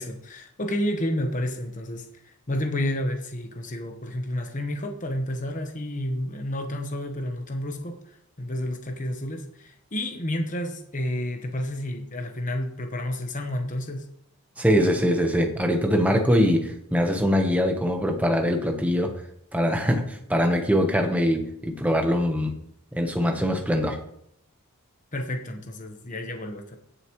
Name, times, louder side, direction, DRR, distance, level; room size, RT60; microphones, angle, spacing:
voice 1, 0.0-8.0 8.4-14.1 25.1-26.8, left 1 dB, 35° left, 5 dB, 1.1 m, -30 dB
voice 2, 14.6-19.1 19.5-22.5 22.9-24.0, equal, 5° right, 4 dB, 1.0 m, -23 dB
16.5 x 6.9 x 3.1 m, 0.70 s
head